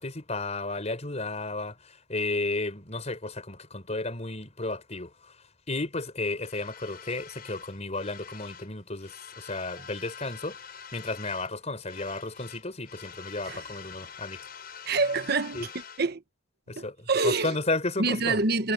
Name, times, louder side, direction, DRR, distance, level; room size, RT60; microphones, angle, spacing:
voice 1, 0.0-5.3 5.7-10.6 10.9-14.4 15.5-15.7 16.7-18.4, left 2 dB, 35° left, 4.4 m, -33 dB
sound 1, 6.4-8.7 9.0-11.6 11.8-16.1, left 7 dB, 50° left, 6.5 m, -46 dB
voice 2, 14.9-15.7 16.0-16.2 16.8-17.6 18.0-18.7, right 3 dB, 55° right, 1.1 m, -26 dB
head